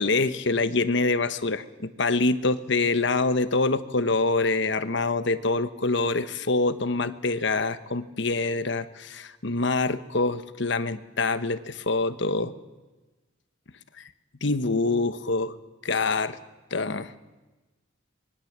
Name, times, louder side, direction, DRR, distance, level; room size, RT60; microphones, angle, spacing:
voice 1, 0.0-12.5 14.0-14.1 14.4-15.5 15.8-16.4 16.7-17.1, left 3 dB, 65° left, 12 dB, 1.2 m, -25 dB
24.5 x 21.5 x 7.4 m, 1.2 s
head